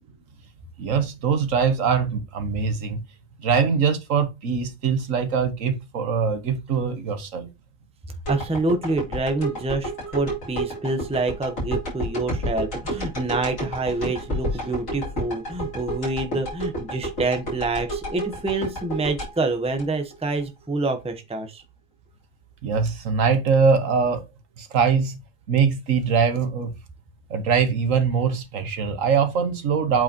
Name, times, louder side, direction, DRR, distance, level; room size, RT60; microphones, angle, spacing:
voice 1, 0.8-3.0 3.4-7.5 22.6-24.2 24.6-25.2 25.5-26.7 27.3-30.0, right 6 dB, 70° right, 1.4 m, -22 dB
sound 1, 8.2-20.4 20.9-21.0, right 1 dB, 70° left, 4.3 m, -30 dB
voice 2, 8.3-21.6, right 3 dB, 5° right, 0.8 m, -27 dB
8.2 x 4.8 x 2.9 m
omnidirectional pair, 1.4 m